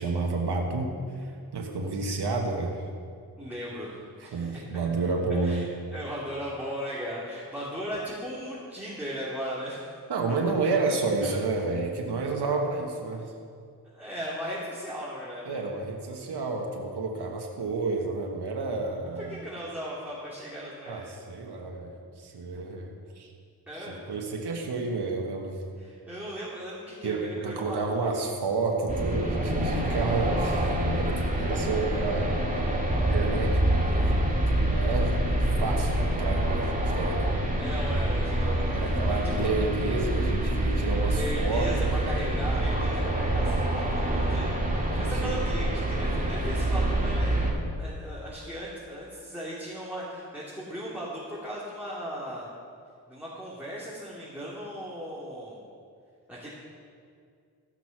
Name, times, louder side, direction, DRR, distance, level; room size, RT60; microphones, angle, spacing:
voice 1, 0.0-2.8 4.3-5.7 10.1-13.2 15.5-19.4 20.9-23.3 23.8-25.6 27.0-30.7 31.0-32.5 33.0-34.2 34.6-35.1 35.6-37.3 38.7-41.9 44.9-45.3, right 3 dB, 80° right, 1 dB, 1.4 m, -30 dB
voice 2, 3.4-4.5 5.4-5.6 5.9-9.8 11.2-11.4 13.8-15.6 19.2-21.0 23.7-23.9 25.8-28.1 37.6-38.8 39.1-39.5 41.1-47.4 47.8-52.5 53.1-55.6 56.3-56.5, equal, 5° right, -8 dB, 3.2 m, -37 dB
sound 1, 28.9-47.5, right 1 dB, 20° right, 2.3 m, -26 dB
15.0 x 6.1 x 6.0 m, 2.2 s
cardioid pair, 40°, 39 cm